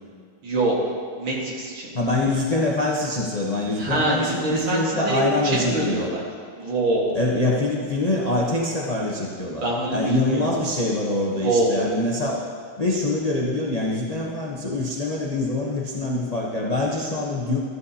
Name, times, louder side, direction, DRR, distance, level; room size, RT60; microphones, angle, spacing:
voice 1, 0.4-1.9 3.8-6.2 6.6-7.2 9.6-10.5 11.3-11.8, right 2 dB, 70° right, -3 dB, 2.5 m, -24 dB
voice 2, 1.9-6.1 7.1-12.4 12.8-17.6, left 2 dB, 55° left, -4 dB, 0.4 m, -24 dB
13.5 x 10.5 x 2.8 m, 2.1 s
omnidirectional pair, 2.3 m